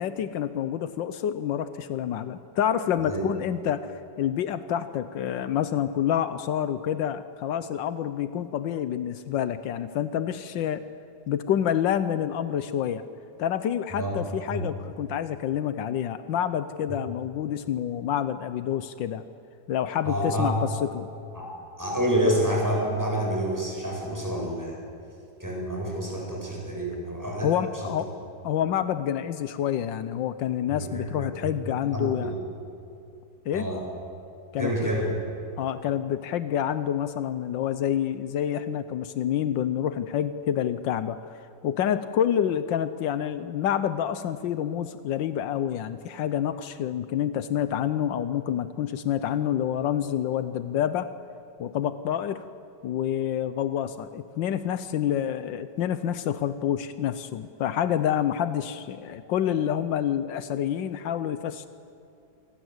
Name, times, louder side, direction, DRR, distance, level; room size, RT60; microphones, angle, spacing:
voice 1, 0.0-10.9 11.3-13.0 13.4-19.2 19.7-21.1 27.4-28.1 28.4-32.3 33.4-33.7 34.5-34.7 35.6-51.1 51.6-52.4 52.8-61.7, left 10 dB, 85° left, 12 dB, 1.5 m, -28 dB
voice 2, 20.0-20.6 21.3-21.5 21.8-24.8 25.4-27.5 27.8-27.9 30.7-31.3 31.9-32.3 33.5-33.8 34.6-35.1, right 1 dB, 10° right, -2 dB, 7.8 m, -28 dB
28.0 x 25.0 x 8.1 m, 2.6 s
omnidirectional pair, 2.0 m